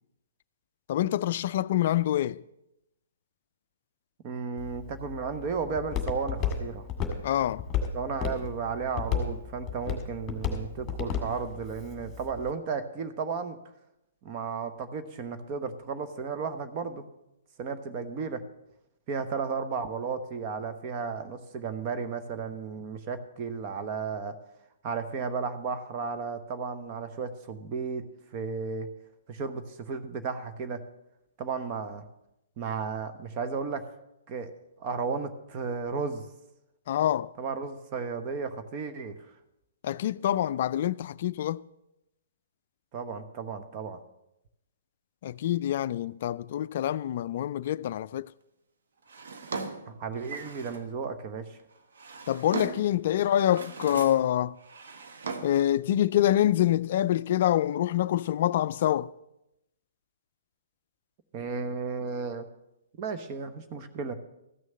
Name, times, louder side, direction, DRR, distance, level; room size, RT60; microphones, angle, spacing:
voice 1, 0.9-2.4 7.2-7.7 36.9-37.3 39.8-41.6 45.2-48.3 52.3-54.6 55.4-59.1, left 12 dB, 50° left, 0.3 m, -26 dB
voice 2, 4.2-6.9 7.9-13.6 14.2-17.0 17.6-18.4 19.1-24.3 24.8-28.0 28.3-28.9 29.3-30.8 31.4-32.0 32.6-33.8 34.3-34.5 34.8-36.3 37.4-39.1 42.9-44.0 49.9-51.6 61.3-62.5 63.0-64.1, right 5 dB, 35° right, 1.1 m, -34 dB
Walk footsteps, 4.6-12.5, left 7 dB, 20° left, 1.9 m, -34 dB
Drawer open or close, 49.1-50.9 51.7-53.0 53.4-54.3 54.6-55.7, right 4 dB, 65° right, 1.2 m, -39 dB
14.0 x 6.3 x 7.5 m
figure-of-eight pair, 120°, 0 cm